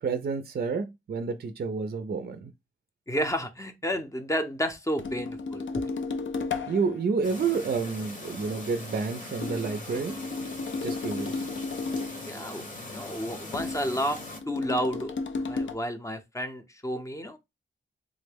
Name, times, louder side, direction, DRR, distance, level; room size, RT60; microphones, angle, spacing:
voice 1, 0.0-2.5 6.7-10.2 10.8-11.5, right 5 dB, 50° right, 0.4 m, -29 dB
voice 2, 3.1-5.9 12.3-14.2 14.5-15.1 15.4-17.4, equal, 15° left, 0.6 m, -31 dB
sound 1, 5.0-7.0 9.4-12.3 13.5-15.7, left 3 dB, 70° left, 0.5 m, -33 dB
Chirp tweet, 7.2-14.4, left 2 dB, 40° left, 0.9 m, -41 dB
3.6 x 2.1 x 3.3 m
wide cardioid pair, 85°, 20 cm